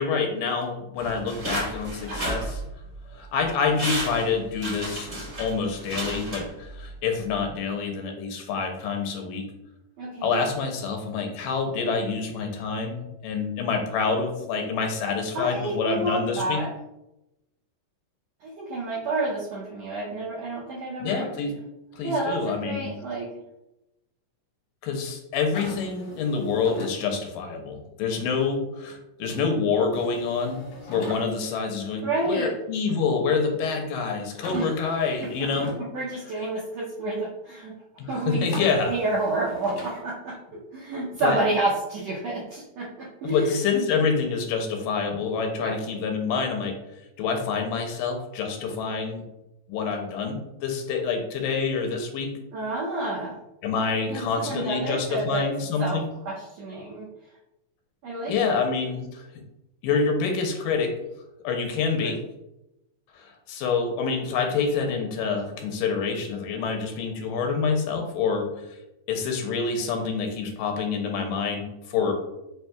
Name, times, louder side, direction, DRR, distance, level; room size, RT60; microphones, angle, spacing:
voice 1, 0.0-2.6 3.1-9.5 10.2-16.6 21.0-21.5 21.9-22.9 24.8-35.7 38.0-38.9 41.2-41.4 43.2-46.8 47.2-49.2 49.7-52.3 53.6-56.0 58.2-59.2 59.8-60.9 61.4-62.2 63.1-68.5 69.1-72.1, left 5 dB, 90° left, 4 dB, 2.3 m, -27 dB
sound 1, 1.0-3.0 3.4-3.5 3.7-6.9 7.3-7.4, right 1 dB, 50° right, 0.6 m, -32 dB
voice 2, 10.0-10.4 15.3-16.7 18.4-21.3 22.0-22.4 22.6-23.3 32.0-32.5 34.5-34.7 35.6-37.7 38.1-40.3 40.7-43.5 45.6-45.7 52.5-53.3 54.1-55.5 55.8-56.0 56.2-57.1 58.0-58.6 62.0-62.1, right 2 dB, 80° right, -6 dB, 1.4 m, -29 dB
sound 2, 25.5-27.0 29.9-31.2 34.4-35.8 38.5-40.0, left 2 dB, 70° left, 1.4 m, -40 dB
5.7 x 2.8 x 2.3 m, 0.92 s
omnidirectional pair, 3.8 m